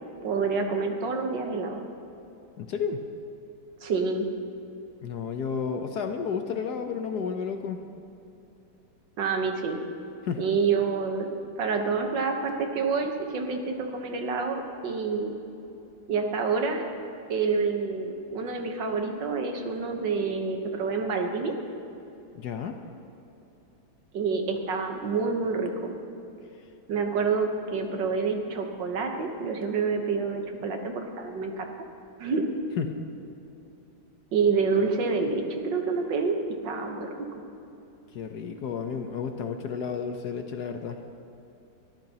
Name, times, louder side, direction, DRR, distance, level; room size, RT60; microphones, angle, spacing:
voice 1, 0.2-1.8 3.8-4.3 9.2-9.8 10.4-11.3 11.6-15.4 16.1-16.9 17.3-21.5 24.1-25.9 26.9-31.7 32.2-32.4 34.3-36.4 36.6-37.1, right 4 dB, 70° right, 4 dB, 1.8 m, -27 dB
voice 2, 2.6-3.0 5.0-7.8 10.2-10.4 22.4-22.8 32.8-33.0 38.1-41.0, left 6 dB, 65° left, 6 dB, 1.2 m, -32 dB
22.5 x 13.5 x 2.9 m, 2.8 s
omnidirectional pair, 2.1 m